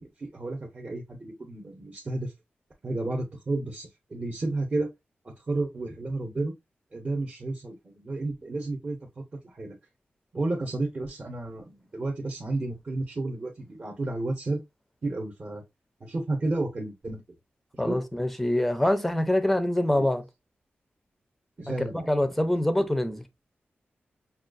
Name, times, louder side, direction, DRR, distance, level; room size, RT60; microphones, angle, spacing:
voice 1, 0.0-2.3 2.8-4.9 5.2-6.5 6.9-9.8 10.3-14.6 15.0-15.6 16.0-17.2 17.9-18.0 19.9-20.1 21.6-22.3, right 2 dB, 35° right, 0.8 m, -32 dB
voice 2, 17.8-20.2 21.9-23.2, left 1 dB, 5° left, 0.5 m, -25 dB
5.4 x 2.3 x 2.5 m
wide cardioid pair, 150°, 4 cm